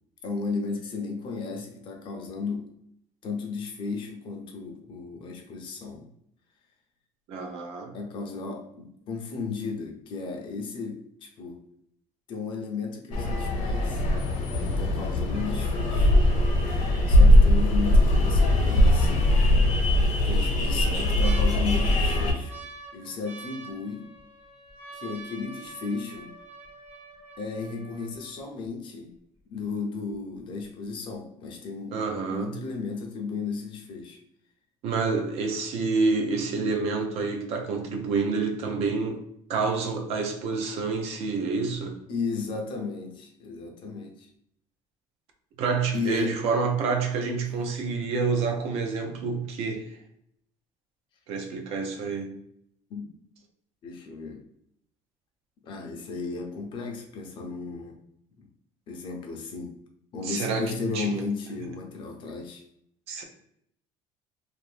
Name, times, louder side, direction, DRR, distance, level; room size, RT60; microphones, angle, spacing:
voice 1, 0.2-2.7 3.2-6.1 7.9-11.6 12.3-14.0 14.6-16.1 17.1-19.3 20.2-22.5 22.9-24.1 24.9-26.3 27.4-29.1 29.5-32.0 32.2-34.2 42.1-44.3 45.9-46.4 52.0-52.1 52.9-53.1 53.8-54.4 55.6-58.0 58.4-58.5 58.9-59.7 60.1-62.6, left 4 dB, 40° left, 0.6 m, -34 dB
voice 2, 7.3-7.9 16.5-16.6 31.9-32.6 34.8-39.2 39.5-42.0 45.6-49.9 51.3-52.3 60.2-61.1 63.1-63.2, right 4 dB, 55° right, 0.6 m, -28 dB
sound 1, 13.1-22.3, left 1 dB, 70° left, 0.8 m, -21 dB
sound 2, 21.0-28.7 29.4-29.5 29.6-30.1 30.6-30.7, right 3 dB, 15° right, 0.7 m, -46 dB
2.6 x 2.5 x 3.2 m
cardioid pair, 160°, 12 cm